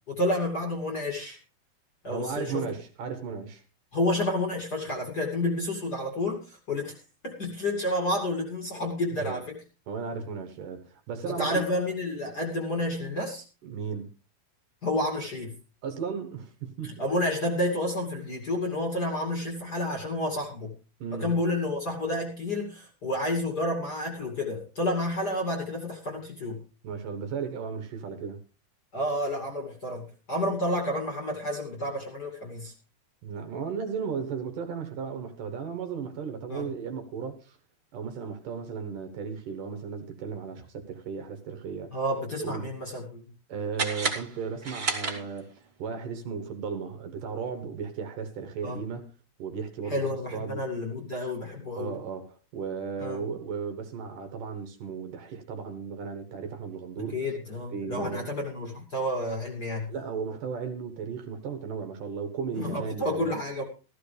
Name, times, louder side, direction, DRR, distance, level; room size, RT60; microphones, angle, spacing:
voice 1, 0.1-1.4 2.0-2.6 3.9-6.9 7.2-9.6 11.4-13.4 14.8-15.5 16.8-20.7 21.1-26.6 28.9-32.7 36.5-36.7 41.9-43.2 48.6-48.8 49.8-51.9 53.0-53.2 57.1-59.9 62.6-63.6, left 1 dB, 30° left, 2.4 m, -30 dB
voice 2, 2.1-3.6 9.2-9.4 9.9-11.6 13.6-14.1 15.8-16.9 21.0-21.3 26.8-28.4 33.2-37.6 37.9-42.0 42.4-42.7 43.5-45.5 45.8-49.1 49.4-50.6 51.7-57.2 57.7-58.3 59.9-63.3, right 6 dB, 65° right, 2.8 m, -35 dB
sound 1, 43.7-45.7, right 3 dB, 20° right, 2.1 m, -32 dB
15.5 x 14.0 x 3.4 m
omnidirectional pair, 4.3 m